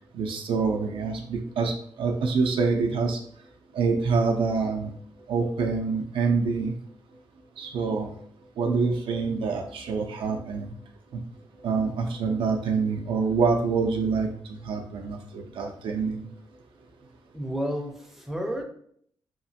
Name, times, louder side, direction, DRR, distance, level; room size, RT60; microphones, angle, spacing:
voice 1, 0.1-3.2 3.7-4.9 5.3-6.7 7.6-8.1 8.6-10.7 11.1-11.2 11.6-14.3 14.6-16.2, right 4 dB, 80° right, 2 dB, 0.4 m, -26 dB
voice 2, 17.3-18.6, equal, 5° right, 2 dB, 0.4 m, -31 dB
2.9 x 2.4 x 2.7 m, 0.64 s
wide cardioid pair, 150°, 9 cm